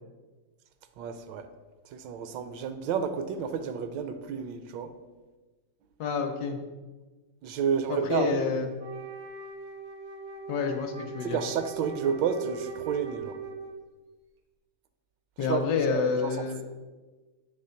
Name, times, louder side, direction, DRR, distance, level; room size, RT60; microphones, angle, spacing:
voice 1, 1.0-1.5 1.8-5.0 7.4-8.6 11.2-13.4 15.4-16.4, right 7 dB, 80° right, 1.3 m, -31 dB
voice 2, 6.0-6.6 7.9-8.7 10.5-11.4 15.4-16.6, left 5 dB, 70° left, 1.1 m, -28 dB
Wind instrument woodwind instrument, 8.8-13.9, right 5 dB, 60° right, 0.6 m, -40 dB
7.5 x 3.4 x 5.6 m
omnidirectional pair, 2.0 m